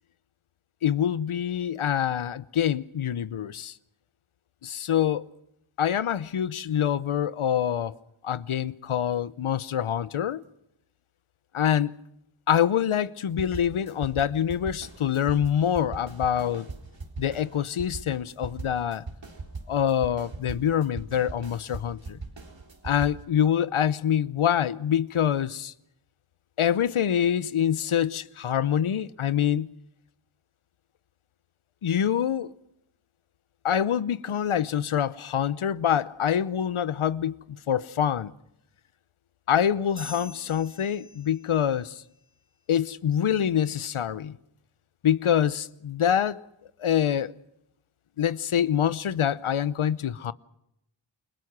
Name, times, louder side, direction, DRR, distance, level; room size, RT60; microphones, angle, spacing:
voice 1, 0.8-3.7 4.6-5.3 5.8-8.0 8.2-10.4 11.5-12.0 12.5-16.7 17.2-19.0 19.7-22.2 22.8-25.7 26.6-29.7 31.8-32.5 33.6-38.3 39.5-42.0 42.7-44.4 45.0-46.4 46.8-47.3 48.2-50.3, left 9 dB, 75° left, 0.9 m, -25 dB
sound 1, 13.4-23.2, right 3 dB, 60° right, 3.9 m, -40 dB
sound 2, 40.0-41.8, left 2 dB, 25° left, 1.5 m, -45 dB
29.5 x 20.5 x 6.1 m
cardioid pair, 40°, 50 cm